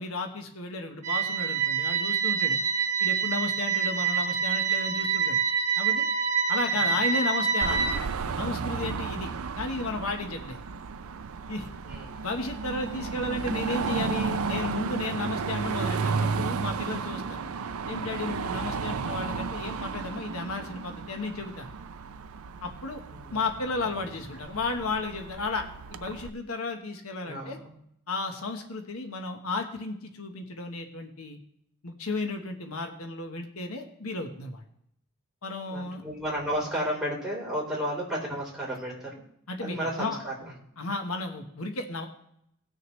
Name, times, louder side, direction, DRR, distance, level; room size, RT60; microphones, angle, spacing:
voice 1, 0.0-2.6 3.0-5.4 5.8-6.1 6.5-10.6 11.5-11.7 12.2-17.4 17.9-21.7 22.6-23.0 23.3-27.6 28.1-31.4 31.8-34.6 35.4-36.0 39.5-40.2 40.8-42.1, left 3 dB, 85° left, 4 dB, 1.3 m, -33 dB
sound 1, 1.0-8.0, right 6 dB, 35° right, 1.3 m, -26 dB
Car passing by / Traffic noise roadway noise / Engine, 7.6-26.3, right 5 dB, 85° right, 0.5 m, -33 dB
voice 2, 11.8-12.2 13.0-13.1 23.1-23.4 27.2-27.7 35.6-39.2 39.6-40.3, equal, 5° right, -5 dB, 3.7 m, -33 dB
19.0 x 6.5 x 3.2 m, 0.74 s
head